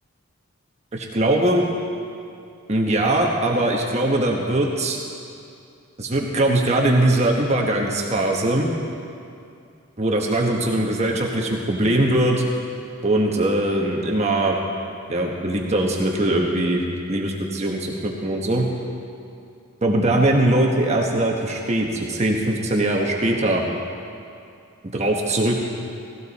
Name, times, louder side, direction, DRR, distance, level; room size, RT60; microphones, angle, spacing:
voice 1, 0.9-1.6 2.7-5.0 6.0-8.7 10.0-12.4 13.0-14.5 15.1-16.8 17.1-18.7 19.8-23.6 24.9-25.7, right 1 dB, 30° right, 0 dB, 1.2 m, -21 dB
17.5 x 15.5 x 4.2 m, 2.4 s
head